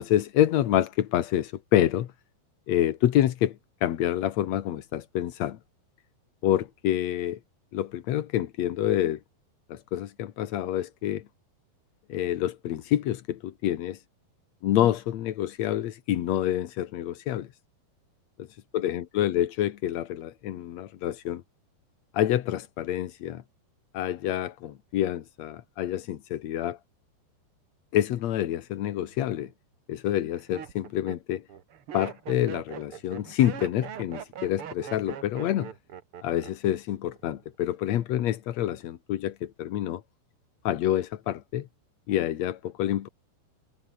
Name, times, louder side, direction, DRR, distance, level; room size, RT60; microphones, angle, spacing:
voice 1, 0.0-2.1 2.7-3.6 3.8-5.6 6.4-7.4 7.7-9.2 9.7-11.2 12.1-14.0 14.6-17.5 18.4-18.5 18.7-21.4 22.1-23.4 23.9-26.8 27.9-29.5 29.9-31.4 31.9-35.7 36.2-40.0 40.6-41.7 42.1-43.1, left 12 dB, 85° left, 1.5 m, -27 dB
Laughter, 29.1-29.5 30.1-36.8 37.0-37.5, right 9 dB, 75° right, 1.2 m, -41 dB
omnidirectional pair, 4.9 m